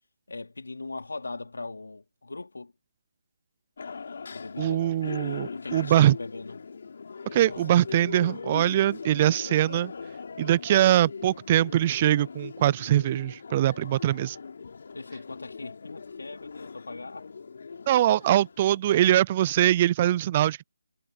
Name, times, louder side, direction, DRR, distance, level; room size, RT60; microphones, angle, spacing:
voice 1, 0.3-2.7 4.3-4.9 5.4-6.6 7.5-8.2 14.9-17.3, left 3 dB, 85° left, 3.9 m, -40 dB
sound 1, 3.8-18.8, left 5 dB, 45° left, 3.5 m, -41 dB
voice 2, 4.6-6.1 7.3-9.9 10.4-14.4 17.9-20.6, right 12 dB, 20° right, 0.3 m, -22 dB
hypercardioid pair, 175°, 0 cm